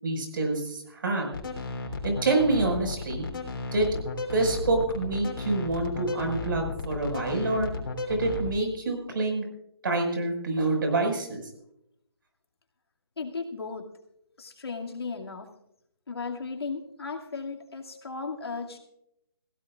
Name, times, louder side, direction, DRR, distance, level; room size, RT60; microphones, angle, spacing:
voice 1, 0.0-1.3 2.0-3.3 3.7-3.9 4.3-7.7 8.1-9.4 9.8-11.5, right 2 dB, 55° right, 3 dB, 5.5 m, -27 dB
sound 1, 1.3-8.6, left 3 dB, 60° left, 3.4 m, -34 dB
voice 2, 13.2-13.9 14.4-15.5 16.1-18.8, left 4 dB, 80° left, 2 dB, 2.4 m, -35 dB
22.0 x 16.5 x 2.5 m, 0.79 s
hypercardioid pair, 160°, 13 cm